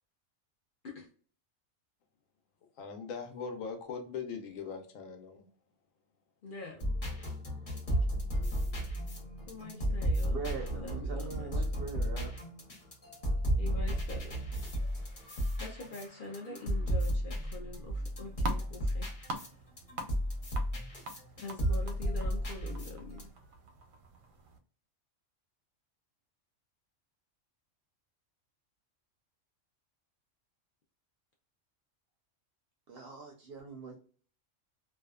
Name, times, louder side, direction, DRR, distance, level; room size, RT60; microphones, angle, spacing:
voice 1, 2.8-5.5, left 6 dB, 85° left, 5 dB, 1.1 m, -40 dB
voice 2, 6.4-6.8 9.5-10.4 10.7-11.8 13.6-14.4 15.6-19.1 19.4-19.6 21.4-23.3, left 2 dB, 60° left, 0 dB, 0.5 m, -45 dB
sound 1, 6.8-19.5 19.8-23.2, equal, 45° left, 1.0 m, -34 dB
voice 3, 10.3-12.4 32.9-34.0, right 4 dB, 65° right, 2 dB, 0.6 m, -42 dB
sound 2, 17.8-24.6, right 1 dB, 90° right, 1.0 m, -45 dB
2.6 x 2.2 x 2.3 m, 0.42 s
omnidirectional pair, 1.4 m